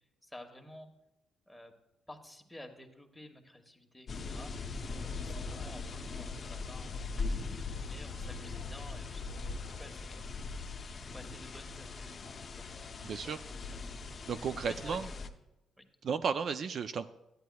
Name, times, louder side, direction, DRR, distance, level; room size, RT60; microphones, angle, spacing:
voice 1, 0.2-0.9 1.5-1.7 2.1-4.5 5.0-7.5 7.8-10.4 11.0-12.7 13.2-13.3 13.7-13.8 14.6-15.4 15.8-15.9, left 1 dB, 5° left, 2 dB, 1.2 m, -52 dB
sound 1, 4.1-15.3, left 4 dB, 40° left, 0.6 m, -40 dB
sound 2, 4.8-10.3, left 7 dB, 90° left, 0.6 m, -57 dB
voice 2, 13.0-13.4 14.3-15.1 16.0-17.1, right 6 dB, 55° right, 10 dB, 0.3 m, -34 dB
12.5 x 9.3 x 2.3 m, 0.93 s
cardioid pair, 90°, 0 cm